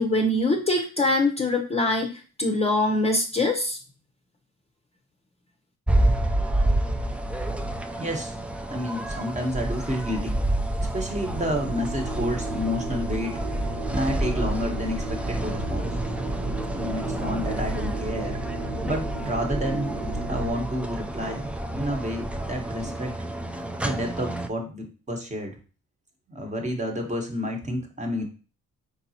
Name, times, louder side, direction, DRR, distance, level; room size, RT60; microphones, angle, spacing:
voice 1, 0.0-2.1 2.4-3.8, left 2 dB, 20° left, 2 dB, 0.7 m, -23 dB
sound 1, 5.9-24.5, right 1 dB, 5° right, 0.3 m, -29 dB
voice 2, 8.0-8.4 8.7-10.5 10.8-13.4 13.9-15.9 16.7-18.4 18.8-20.0 20.3-23.1 23.8-25.6 26.3-28.2, equal, 25° right, 2 dB, 1.1 m, -30 dB
sound 2, 11.1-20.5, right 2 dB, 55° right, 1.3 m, -33 dB
3.9 x 3.9 x 2.8 m, 0.35 s
cardioid pair, 90°, 30 cm